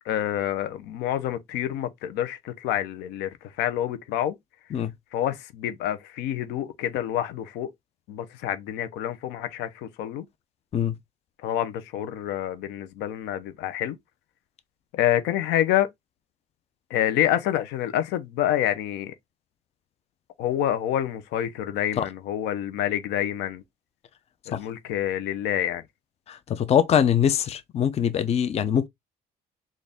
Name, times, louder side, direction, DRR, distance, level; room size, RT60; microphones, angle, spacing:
voice 1, 0.1-3.3 3.6-4.3 5.1-7.7 8.1-10.2 11.4-14.0 14.9-15.9 16.9-19.1 20.4-23.6 24.5-25.8, left 11 dB, 90° left, 0.7 m, -27 dB
voice 2, 26.3-28.9, left 9 dB, 40° left, 0.5 m, -23 dB
4.0 x 2.5 x 3.4 m
cardioid pair, 110°, 17 cm